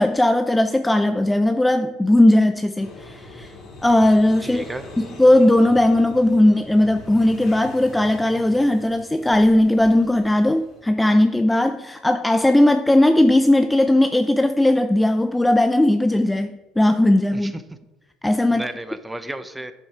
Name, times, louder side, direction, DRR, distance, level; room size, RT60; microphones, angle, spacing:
voice 1, 0.0-3.5 3.8-4.6 5.2-17.6 18.2-18.7, left 1 dB, 10° left, 9 dB, 0.4 m, -17 dB
sound 1, 2.8-10.8, left 2 dB, 50° left, 3.0 m, -41 dB
voice 2, 4.4-4.9 17.3-17.8 18.5-19.7, right 1 dB, 10° right, 11 dB, 0.8 m, -33 dB
7.8 x 7.3 x 4.9 m, 1.1 s
supercardioid pair, 85°, 0 cm